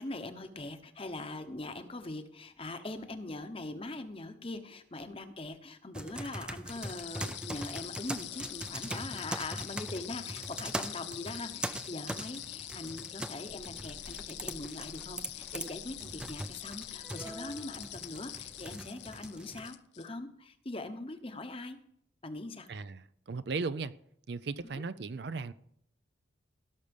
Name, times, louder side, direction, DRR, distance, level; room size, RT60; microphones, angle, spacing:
voice 1, 0.0-21.8 22.2-22.7 24.7-24.8, left 2 dB, 30° left, 0.9 m, -42 dB
sound 1, 5.9-19.7, right 1 dB, 5° right, 0.5 m, -42 dB
sound 2, 6.7-20.1, left 14 dB, 60° left, 0.5 m, -45 dB
Child speech kid speaking, 13.4-18.7, left 1 dB, 80° left, 1.3 m, -56 dB
voice 2, 22.7-23.9 24.3-25.5, right 4 dB, 60° right, 0.5 m, -36 dB
16.5 x 6.7 x 5.3 m
head